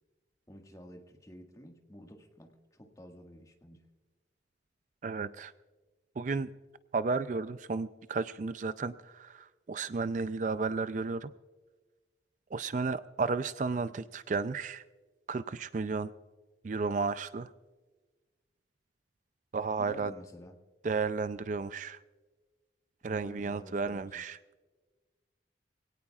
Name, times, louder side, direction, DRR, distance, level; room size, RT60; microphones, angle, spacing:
voice 1, 0.5-3.9 19.8-20.6 23.1-24.2, equal, 20° left, 3 dB, 1.7 m, -51 dB
voice 2, 5.0-5.5 6.2-6.5 6.9-11.3 12.5-14.8 15.3-16.1 16.6-17.5 19.5-20.1 20.8-22.0 23.0-24.4, right 4 dB, 45° right, 13 dB, 0.4 m, -33 dB
24.0 x 17.5 x 2.4 m, 1.3 s
head